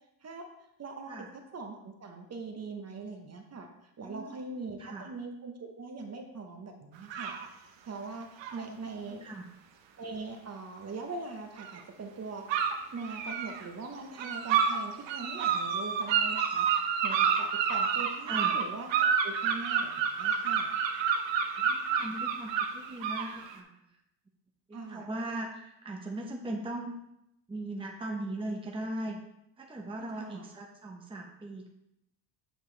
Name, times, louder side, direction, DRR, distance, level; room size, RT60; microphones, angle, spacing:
voice 1, 0.8-1.2 1.5-3.7 4.0-9.2 10.0-12.4 12.9-20.7 24.7-25.1 30.0-30.5, right 3 dB, 30° right, 3 dB, 1.0 m, -42 dB
voice 2, 4.0-5.1 8.7-8.8 9.1-9.5 18.3-18.5 21.6-24.0 24.7-26.9 27.5-29.2 29.6-31.7, right 1 dB, 10° right, 0 dB, 0.9 m, -39 dB
sound 1, 7.1-7.5 8.4-8.6 11.6-11.8 12.5-13.6 14.2-14.8 15.1-23.5, right 7 dB, 65° right, 0.9 m, -29 dB
8.0 x 4.6 x 3.3 m, 0.83 s
cardioid pair, 105°, 48 cm